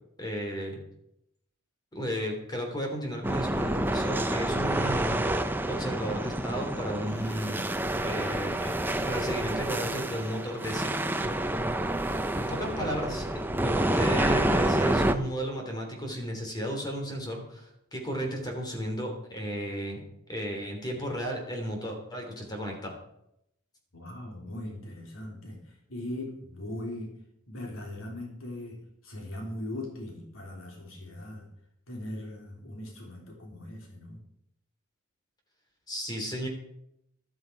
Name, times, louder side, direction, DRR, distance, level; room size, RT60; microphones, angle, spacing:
voice 1, 0.2-0.8 1.9-5.2 5.7-7.6 8.0-10.9 12.4-13.2 13.6-20.0 20.3-22.9 35.9-36.5, equal, 20° left, 2 dB, 3.2 m, -34 dB
sound 1, 3.2-15.1, right 1 dB, 10° right, 0.7 m, -28 dB
voice 2, 23.9-27.1 27.5-31.5 31.9-34.2, left 1 dB, 75° left, 0 dB, 3.5 m, -40 dB
13.5 x 12.5 x 4.6 m, 0.80 s
head